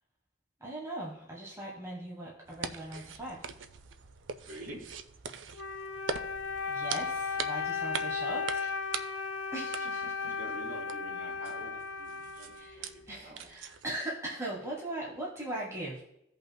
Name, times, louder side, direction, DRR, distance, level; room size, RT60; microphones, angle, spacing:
voice 1, 0.6-3.5 6.7-8.7 9.5-10.3 12.5-16.0, right 1 dB, 15° right, -4 dB, 1.3 m, -40 dB
sound 1, 2.5-14.0, right 6 dB, 75° right, 0.5 m, -43 dB
voice 2, 4.4-4.8 8.6-8.7 10.2-13.5, right 1 dB, 50° right, -5 dB, 3.4 m, -47 dB
Wind instrument woodwind instrument, 5.5-13.1, left 4 dB, 80° left, 0.6 m, -35 dB
16.0 x 5.5 x 2.3 m, 0.80 s
head